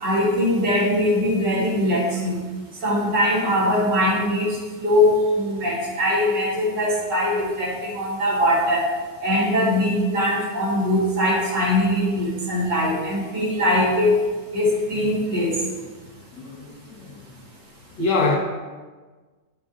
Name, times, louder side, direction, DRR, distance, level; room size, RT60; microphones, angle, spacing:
voice 1, 0.0-2.4 2.8-8.8 9.2-14.2 14.5-15.6, left 1 dB, 85° right, -5 dB, 2.3 m, -21 dB
voice 2, 16.4-17.1 18.0-18.4, left 3 dB, 85° left, 0 dB, 1.8 m, -24 dB
8.9 x 6.1 x 2.5 m, 1.4 s
omnidirectional pair, 1.8 m